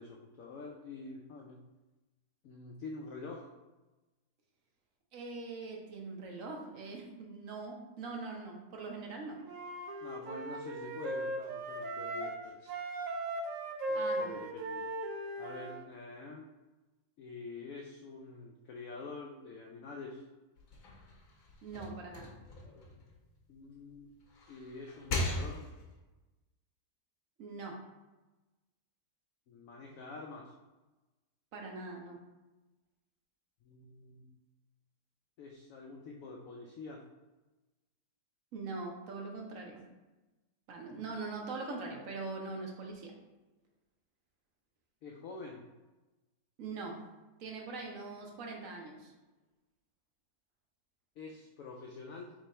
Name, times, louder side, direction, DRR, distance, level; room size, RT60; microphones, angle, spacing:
voice 1, 0.0-1.6 2.4-3.5 10.0-12.7 13.9-14.9 15.4-16.5 17.2-20.2 22.6-22.8 23.5-24.1 24.5-25.6 29.5-30.5 33.6-34.3 35.4-37.1 40.9-41.0 45.0-45.7 51.2-52.3, left 3 dB, 75° left, 0 dB, 0.7 m, -47 dB
voice 2, 5.1-9.4 13.9-14.5 21.6-22.3 27.4-27.8 31.5-32.2 38.5-39.9 40.7-43.1 46.6-47.1 47.4-49.1, right 3 dB, 60° right, 1 dB, 1.0 m, -42 dB
Wind instrument woodwind instrument, 9.4-12.4 12.7-15.8, right 1 dB, 85° right, 0.7 m, -38 dB
sound 1, 20.6-23.8 24.2-26.0, left 2 dB, 60° left, 1.1 m, -39 dB
3.7 x 3.2 x 4.1 m, 1.1 s
omnidirectional pair, 1.9 m